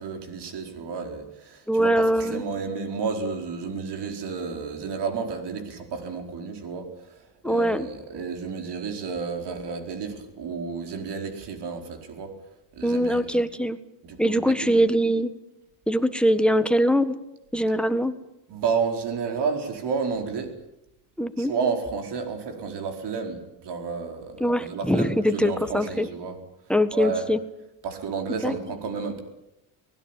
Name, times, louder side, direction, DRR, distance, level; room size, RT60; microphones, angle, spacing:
voice 1, 0.0-12.3 12.7-13.4 14.0-14.8 18.5-20.5 21.4-26.4 26.9-27.3 27.8-29.2, right 5 dB, 70° right, 5 dB, 4.7 m, -31 dB
voice 2, 1.7-2.4 7.4-7.9 12.8-13.8 14.2-15.3 15.9-17.1 17.5-18.1 21.2-21.5 24.4-26.1 26.7-27.4 28.4-28.5, equal, ahead, 9 dB, 1.5 m, -22 dB
24.0 x 20.0 x 9.1 m, 0.88 s
cardioid pair, 135°, 43 cm